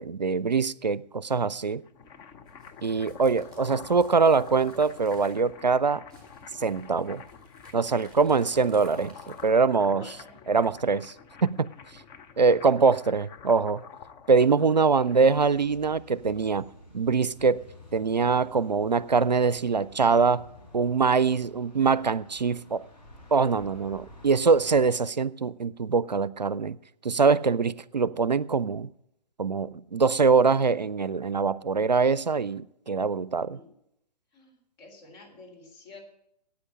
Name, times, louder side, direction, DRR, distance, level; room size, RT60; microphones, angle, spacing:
voice 1, 0.0-1.8 2.8-6.0 6.6-7.2 7.7-10.0 10.5-11.1 11.4-11.7 12.4-13.8 14.3-16.7 16.9-17.6 17.9-20.5 20.7-22.8 23.3-26.8 27.0-28.9 29.4-33.6, right 5 dB, 85° right, 0.4 m, -23 dB
sound 1, 1.7-15.6, left 7 dB, 20° left, 0.7 m, -48 dB
sound 2, 2.5-5.5 5.7-5.8 6.1-9.6, right 2 dB, 5° left, 3.9 m, -55 dB
voice 2, 9.9-10.3 14.8-15.1 33.4-33.7 34.3-36.0, left 2 dB, 35° left, 3.5 m, -49 dB
sound 3, 15.1-24.8, left 1 dB, 90° left, 4.5 m, -51 dB
9.7 x 8.8 x 9.6 m
figure-of-eight pair, 120°, 21 cm